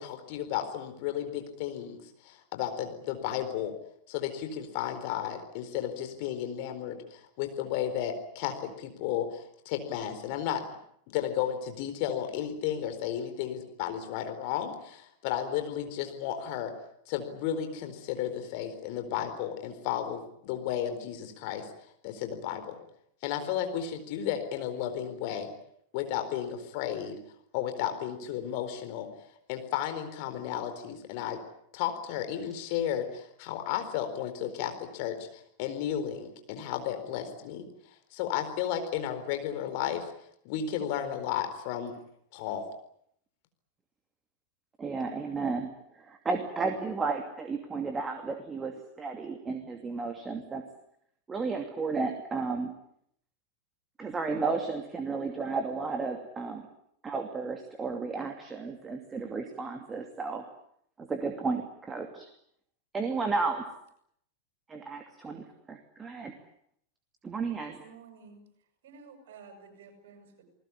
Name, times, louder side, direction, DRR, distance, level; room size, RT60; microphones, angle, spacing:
voice 1, 0.0-3.7 4.1-10.6 11.1-16.7 17.1-21.7 22.0-22.8 23.2-25.5 25.9-27.2 27.5-29.1 29.5-31.4 31.7-37.7 38.1-40.0 40.4-42.0 42.3-42.6, left 10 dB, 45° left, 7 dB, 4.3 m, -33 dB
voice 2, 44.8-50.6 51.3-52.7 54.0-56.6 57.0-60.5 61.0-62.3 62.9-63.7 64.7-66.3 67.2-67.8, right 4 dB, 15° right, 5 dB, 2.6 m, -33 dB
voice 3, 67.8-68.4 68.8-70.5, right 5 dB, 55° right, 6 dB, 7.9 m, -52 dB
29.0 x 20.0 x 8.6 m, 0.71 s
figure-of-eight pair, 90°, 0 cm